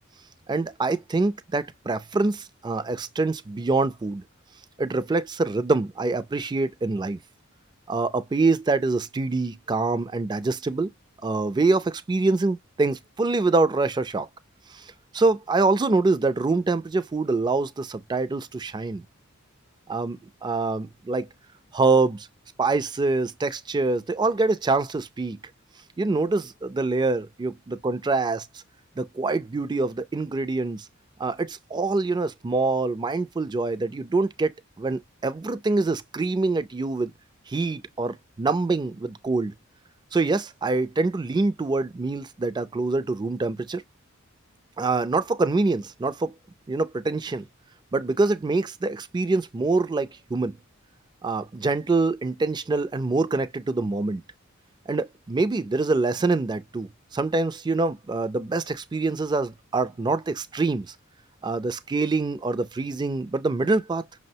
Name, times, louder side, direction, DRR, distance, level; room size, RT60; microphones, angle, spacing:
voice 1, 0.5-4.2 4.8-7.2 7.9-10.9 11.2-14.3 14.7-14.8 15.1-19.0 19.9-21.3 21.7-22.3 22.6-25.4 26.0-28.5 29.0-30.9 31.2-37.1 37.5-39.5 40.1-43.8 44.8-46.3 46.7-47.4 47.9-50.6 51.2-54.2 54.9-60.9 61.4-64.2, right 3 dB, 20° right, 0.3 m, -25 dB
5.9 x 2.1 x 2.7 m
head